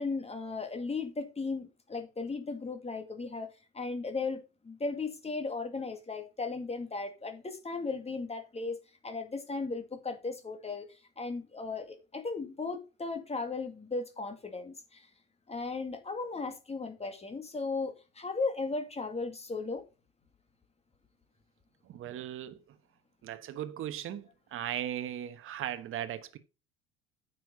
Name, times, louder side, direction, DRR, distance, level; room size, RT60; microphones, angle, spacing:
voice 1, 0.0-8.8 9.0-10.9 11.2-15.1 15.5-19.8, left 3 dB, 20° left, 2.3 m, -36 dB
voice 2, 21.9-22.6 23.2-26.4, right 11 dB, 45° right, 1.2 m, -37 dB
9.3 x 6.4 x 4.0 m
figure-of-eight pair, 65°, 30 cm